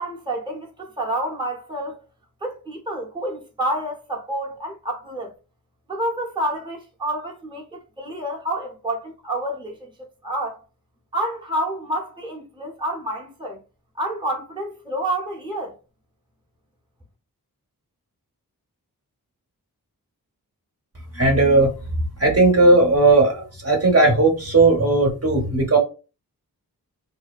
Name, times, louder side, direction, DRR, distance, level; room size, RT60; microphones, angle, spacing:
voice 1, 0.0-2.0 2.4-5.3 5.9-9.9 10.2-10.6 11.1-13.6 14.0-15.8, right 1 dB, 10° right, 0.8 m, -28 dB
voice 2, 21.1-21.7 22.2-25.8, right 2 dB, 40° right, 0.9 m, -16 dB
2.6 x 2.1 x 2.3 m
cardioid pair, 45°, 37 cm